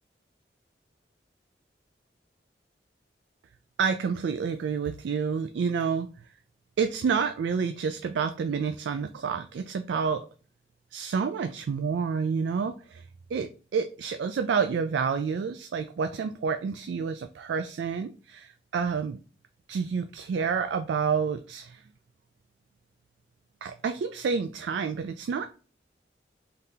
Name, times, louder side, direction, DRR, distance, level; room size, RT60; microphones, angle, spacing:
voice 1, 3.8-6.1 6.8-10.3 10.9-13.0 13.3-19.2 19.7-21.8 23.6-25.5, right 6 dB, 90° right, 8 dB, 0.3 m, -29 dB
3.9 x 2.7 x 3.4 m, 0.36 s
head